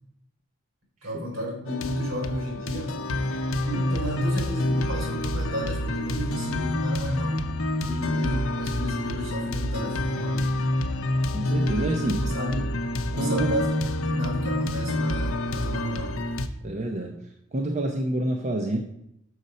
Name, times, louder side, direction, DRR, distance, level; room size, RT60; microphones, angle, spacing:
voice 1, 1.0-2.9 3.6-7.5 7.8-10.5 12.2-12.8 13.1-16.1, equal, 70° right, -2 dB, 3.3 m, -32 dB
sound 1, 1.7-16.5, left 1 dB, 75° left, 0.6 m, -28 dB
voice 2, 11.3-12.2 13.1-13.5 16.6-17.2 17.5-18.8, right 1 dB, 35° right, 3 dB, 0.6 m, -27 dB
6.5 x 5.3 x 5.3 m, 0.77 s
head